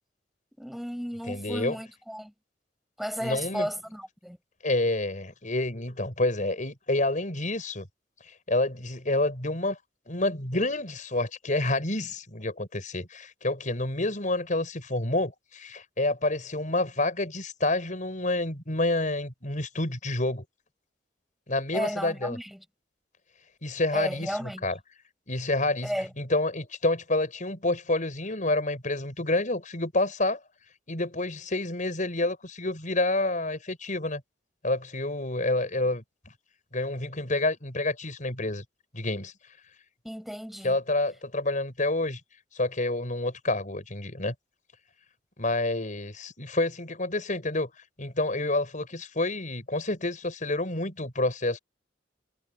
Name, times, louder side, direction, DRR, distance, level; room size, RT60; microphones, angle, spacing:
voice 1, 0.6-2.3 3.0-4.4 21.7-22.6 23.9-24.7 25.8-26.1 40.0-40.8, equal, ahead, 5.8 m, -33 dB
voice 2, 1.3-1.8 3.2-3.7 4.6-7.9 8.5-9.8 10.1-20.4 21.5-22.4 23.6-24.8 25.3-30.4 30.9-34.2 34.6-36.0 36.7-38.6 38.9-39.3 40.6-42.2 42.5-44.3 45.4-47.7 48.0-51.6, left 2 dB, 45° left, 5.9 m, -28 dB
head